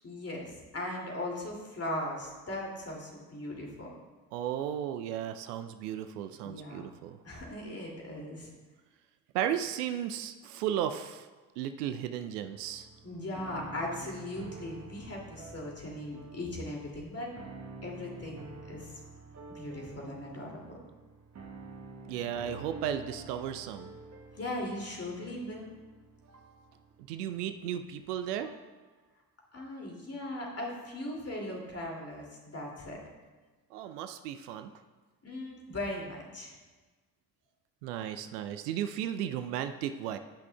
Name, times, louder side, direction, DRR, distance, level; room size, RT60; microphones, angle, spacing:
voice 1, 0.0-4.0 6.4-6.9 7.2-8.5 13.0-17.3 17.8-19.0 19.5-20.6 24.3-25.7 29.5-33.0 35.2-36.5, left 1 dB, 30° left, -1 dB, 2.5 m, -39 dB
voice 2, 4.3-7.2 9.3-11.3 11.6-12.9 22.1-24.0 27.1-28.6 33.7-34.7 37.8-40.2, right 10 dB, 70° right, 9 dB, 0.6 m, -35 dB
sound 1, 12.5-28.7, right 3 dB, 35° right, 1.1 m, -49 dB
17.0 x 5.9 x 2.3 m, 1.3 s
figure-of-eight pair, 45°, 49 cm